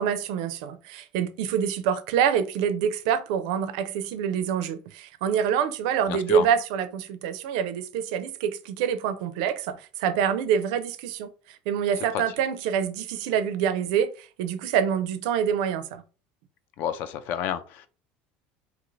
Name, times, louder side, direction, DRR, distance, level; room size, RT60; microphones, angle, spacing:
voice 1, 0.0-11.3 11.7-16.0, right 8 dB, 75° right, 0.4 m, -26 dB
voice 2, 6.1-6.5 12.0-12.2 16.8-17.9, left 9 dB, 45° left, 0.3 m, -30 dB
2.7 x 2.5 x 3.0 m
cardioid pair, 165°, 4 cm